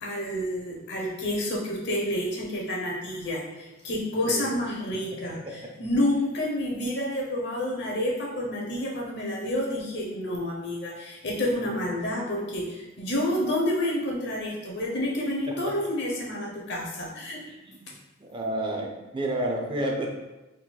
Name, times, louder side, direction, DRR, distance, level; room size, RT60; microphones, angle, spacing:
voice 1, 0.0-17.4, left 1 dB, 60° left, -2 dB, 1.0 m, -29 dB
voice 2, 17.5-17.8 18.2-20.1, right 1 dB, 25° right, 0 dB, 0.5 m, -30 dB
4.3 x 3.8 x 2.3 m, 1.0 s
head